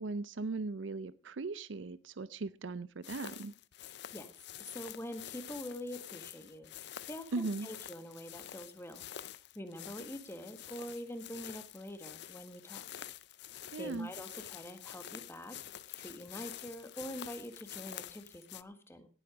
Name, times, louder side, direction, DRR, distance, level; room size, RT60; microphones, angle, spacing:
voice 1, 0.0-3.5 7.3-7.7 13.7-14.1, right 3 dB, 70° right, 16 dB, 0.6 m, -38 dB
sound 1, 3.0-18.6, left 11 dB, 60° left, 0.6 m, -48 dB
voice 2, 3.8-4.3 4.6-9.1 9.5-12.8 13.8-15.6 16.0-19.1, equal, 15° left, 8 dB, 1.7 m, -45 dB
18.0 x 8.2 x 5.0 m, 0.36 s
head